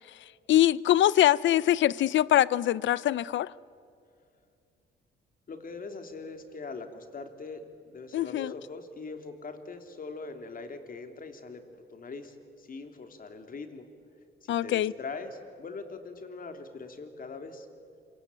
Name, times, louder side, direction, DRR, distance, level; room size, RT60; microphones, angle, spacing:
voice 1, 0.5-3.5 8.1-8.5 14.5-14.9, left 13 dB, 70° left, 0.7 m, -23 dB
voice 2, 5.5-11.6 11.9-13.9 14.4-17.7, left 4 dB, 45° left, 3.2 m, -42 dB
26.5 x 24.0 x 9.1 m
cardioid pair, 90°, 20 cm